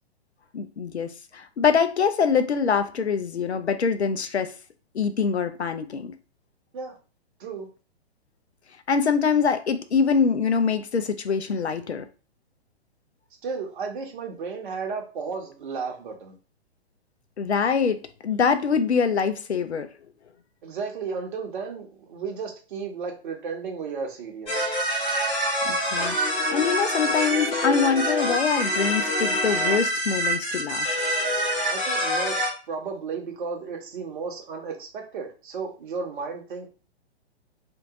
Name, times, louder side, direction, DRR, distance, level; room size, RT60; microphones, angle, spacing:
voice 1, 0.5-4.5 4.9-6.1 8.9-12.1 17.4-19.9 25.6-26.2 26.5-31.0, left 6 dB, 85° left, 0.5 m, -24 dB
voice 2, 13.4-16.3 20.6-24.7 31.7-32.4 32.7-36.7, right 5 dB, 50° right, 1.0 m, -33 dB
sound 1, 24.5-32.5, equal, 20° left, 1.2 m, -25 dB
2.9 x 2.6 x 3.6 m
figure-of-eight pair, 120°, 32 cm